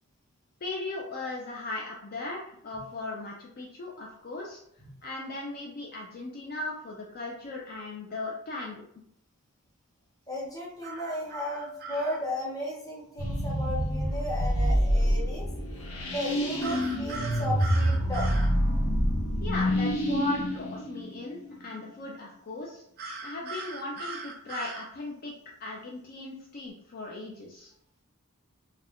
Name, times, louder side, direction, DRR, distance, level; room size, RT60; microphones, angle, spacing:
voice 1, 0.6-4.6 5.0-8.8 19.4-22.8 23.2-25.3 25.6-27.7, left 2 dB, 45° left, -2 dB, 0.4 m, -37 dB
voice 2, 10.3-15.5 16.1-18.3, left 1 dB, 15° left, -4 dB, 0.8 m, -35 dB
sound 1, 10.8-12.2 16.6-18.5 23.0-24.9, right 3 dB, 45° right, 0.5 m, -39 dB
sound 2, 13.2-21.8, equal, 85° left, 0.7 m, -27 dB
2.4 x 2.1 x 3.5 m, 0.71 s
head